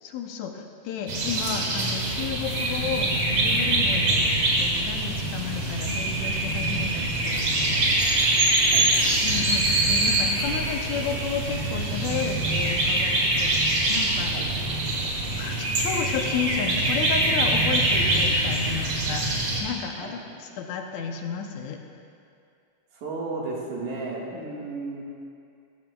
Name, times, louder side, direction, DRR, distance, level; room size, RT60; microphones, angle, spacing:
voice 1, 0.0-7.9 9.2-14.3 15.4-21.8, left 7 dB, 80° left, 4 dB, 2.0 m, -32 dB
sound 1, 1.1-19.6, right 2 dB, 55° right, 2.3 m, -24 dB
voice 2, 22.9-25.0, right 3 dB, 85° right, -4 dB, 3.1 m, -33 dB
13.5 x 13.5 x 2.3 m, 2.4 s
omnidirectional pair, 3.3 m